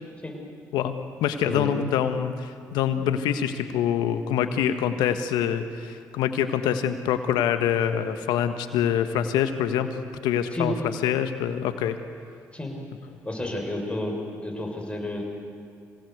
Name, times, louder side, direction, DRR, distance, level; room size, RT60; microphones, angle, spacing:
voice 1, 1.2-9.9 10.2-10.7 11.0-12.0, left 9 dB, 85° left, 9 dB, 1.4 m, -25 dB
voice 2, 13.2-14.2 14.4-15.2, left 1 dB, 15° left, 1 dB, 6.6 m, -30 dB
26.0 x 18.0 x 8.1 m, 2.4 s
supercardioid pair, 55°, 7 cm